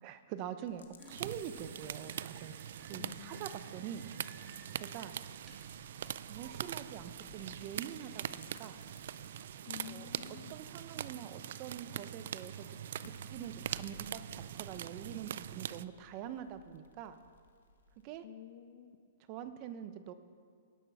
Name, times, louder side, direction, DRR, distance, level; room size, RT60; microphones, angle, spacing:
voice 1, 0.0-2.6 2.9-4.1 4.7-5.2 6.3-8.8 9.9-10.1 10.5-12.8 13.0-17.2 18.0-18.2 19.3-20.1, right 9 dB, 35° right, 11 dB, 0.8 m, -45 dB
sound 1, 0.6-18.1, left 3 dB, 85° left, 1.3 m, -62 dB
sound 2, 1.0-14.7, right 1 dB, 15° right, 2.1 m, -61 dB
sound 3, 1.1-15.8, right 10 dB, 60° right, 0.3 m, -43 dB
voice 2, 2.9-3.4 9.7-10.6 18.2-19.0, left 12 dB, 50° left, 4 dB, 0.7 m, -50 dB
17.5 x 6.2 x 5.7 m, 2.1 s
hypercardioid pair, 140°, 0 cm